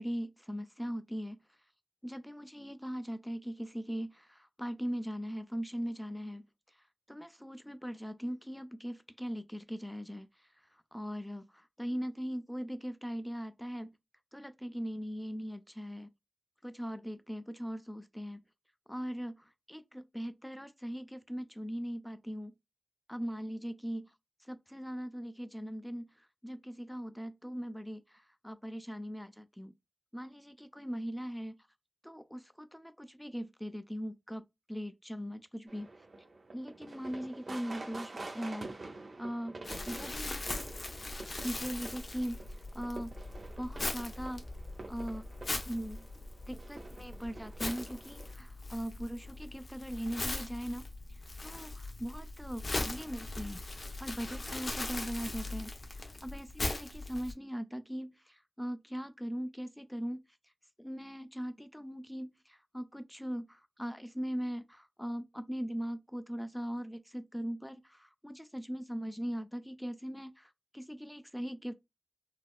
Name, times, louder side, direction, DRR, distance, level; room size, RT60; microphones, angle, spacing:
voice 1, 0.0-1.4 2.0-6.4 7.1-10.3 10.9-11.4 11.8-13.9 14.3-16.1 16.6-18.4 18.9-19.4 19.7-22.5 23.1-24.1 24.5-26.1 26.4-28.0 28.4-29.7 30.1-31.6 32.0-34.4 34.7-35.9 36.5-38.7 39.2-39.5 39.9-40.4 41.4-42.4 42.7-43.1 43.6-44.4 44.9-45.2 45.7-46.0 46.5-50.9 51.4-53.6 54.0-58.1 58.6-60.2 60.8-71.7, equal, 5° left, 0.5 m, -40 dB
sound 1, 35.7-48.3, right 2 dB, 90° right, 0.8 m, -48 dB
Crumpling crinkling, 39.6-57.3, left 2 dB, 70° left, 0.8 m, -40 dB
4.1 x 2.0 x 2.3 m
wide cardioid pair, 65°, 0 cm